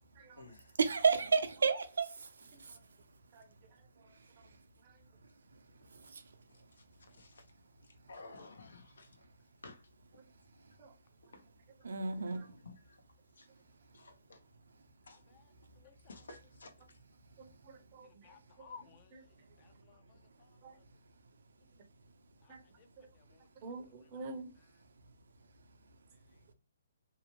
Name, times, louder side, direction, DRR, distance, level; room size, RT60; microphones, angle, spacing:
voice 1, 0.8-2.3 6.1-6.2 11.8-12.4, right 5 dB, 80° right, 0.6 m, -30 dB
voice 2, 8.1-9.1 9.6-9.8 12.2-12.8 13.4-13.5 13.9-14.4 15.1-15.2 16.1-16.7, left 3 dB, 90° left, 0.6 m, -53 dB
voice 3, 15.1-15.4 15.8-16.2 18.2-19.1 19.6-20.5 22.4-22.9 23.1-23.5, left 5 dB, 30° left, 0.4 m, -57 dB
voice 4, 17.4-18.2 18.6-18.7 19.1-19.2 20.6-20.8 22.5-22.6 23.0-23.1 23.6-24.5, right 3 dB, 30° right, 0.6 m, -48 dB
2.7 x 2.0 x 2.9 m
hypercardioid pair, 160°, 0 cm